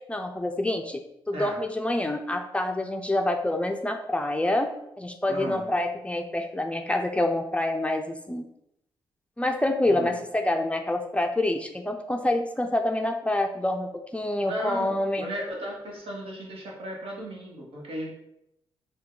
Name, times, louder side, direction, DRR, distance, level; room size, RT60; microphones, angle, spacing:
voice 1, 0.1-1.0 1.3-8.5 9.4-15.3, left 1 dB, 10° left, 4 dB, 0.4 m, -27 dB
voice 2, 5.3-5.7 9.8-10.1 14.4-18.2, equal, 70° right, -2 dB, 1.1 m, -36 dB
3.5 x 2.2 x 3.8 m, 0.81 s
supercardioid pair, 60°, 10 cm